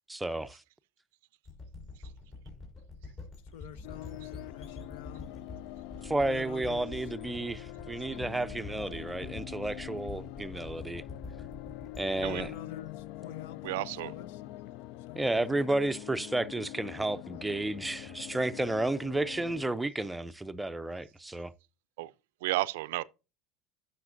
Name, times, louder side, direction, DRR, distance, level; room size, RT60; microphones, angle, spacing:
voice 1, 0.1-0.6 6.0-11.0 12.0-12.5 15.2-21.5, right 2 dB, 10° right, 0.4 m, -32 dB
sound 1, 1.4-14.1, left 3 dB, 40° left, 4.2 m, -47 dB
voice 2, 3.4-5.5 6.0-6.8 12.1-14.7 15.0-15.4, left 10 dB, 85° left, 0.7 m, -48 dB
sound 2, 3.8-19.7, left 16 dB, 65° left, 0.3 m, -44 dB
voice 3, 13.6-14.1 22.0-22.1 22.4-23.0, right 18 dB, 90° right, 0.4 m, -32 dB
12.0 x 5.7 x 2.5 m
supercardioid pair, 130°, 0 cm